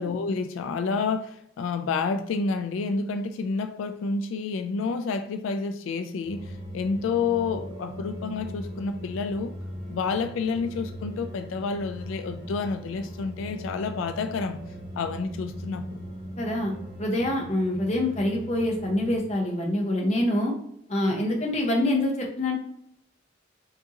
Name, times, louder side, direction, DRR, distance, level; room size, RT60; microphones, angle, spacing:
voice 1, 0.0-9.5 9.9-14.6 15.0-16.0, left 4 dB, 85° left, 0.3 m, -29 dB
sound 1, 6.2-19.2, equal, 35° right, 1.5 m, -39 dB
voice 2, 16.4-16.7 17.0-20.5 20.9-22.6, left 1 dB, 35° left, 0.8 m, -25 dB
4.8 x 2.7 x 2.8 m
head